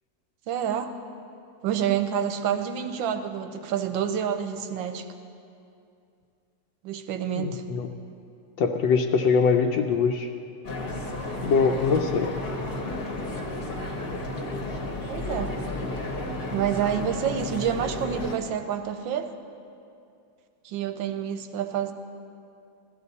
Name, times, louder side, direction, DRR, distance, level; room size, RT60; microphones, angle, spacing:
voice 1, 0.5-0.9 1.6-5.1 6.8-7.6 15.1-15.5 16.5-19.3 20.6-21.9, right 9 dB, 90° right, 8 dB, 1.5 m, -28 dB
voice 2, 7.4-7.9 8.6-10.3 11.4-12.3, left 5 dB, 80° left, 3 dB, 1.3 m, -23 dB
sound 1, 10.6-18.4, left 2 dB, 35° left, 1.1 m, -32 dB
15.5 x 13.0 x 4.1 m, 2.5 s
omnidirectional pair, 2.1 m